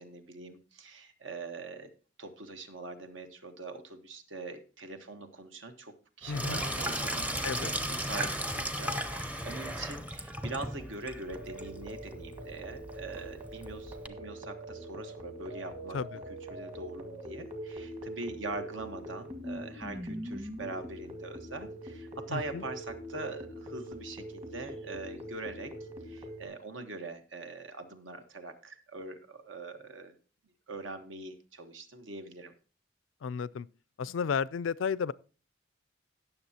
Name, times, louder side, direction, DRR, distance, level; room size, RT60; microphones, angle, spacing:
voice 1, 0.0-1.9 2.2-30.2 30.7-32.5, right 3 dB, 75° right, 1.3 m, -43 dB
Sink (filling or washing), 6.2-14.1, equal, 10° right, 0.6 m, -36 dB
voice 2, 6.3-6.6 7.4-7.7 15.9-16.1 22.3-22.6 33.2-33.7 34.0-35.1, left 6 dB, 80° left, 0.4 m, -32 dB
sound 1, 11.3-26.5, equal, 35° right, 1.6 m, -43 dB
17.0 x 6.8 x 2.8 m
head